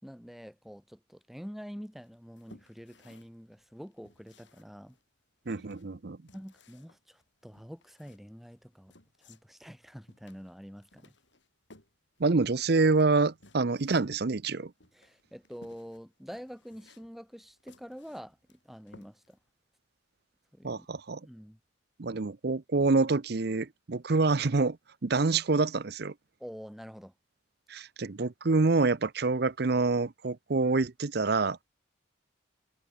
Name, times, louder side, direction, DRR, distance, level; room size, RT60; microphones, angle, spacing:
voice 1, 0.0-5.0 5.5-5.6 6.3-11.1 14.9-19.4 20.5-20.9 21.2-21.6 26.4-27.1, equal, ahead, 4.5 m, -46 dB
sound 1, 2.0-19.5, left 2 dB, 65° left, 6.6 m, -61 dB
voice 2, 5.5-6.2 12.2-14.7 20.6-21.2 22.0-24.8 25.0-26.1 27.7-31.6, right 3 dB, 55° right, 0.7 m, -27 dB
head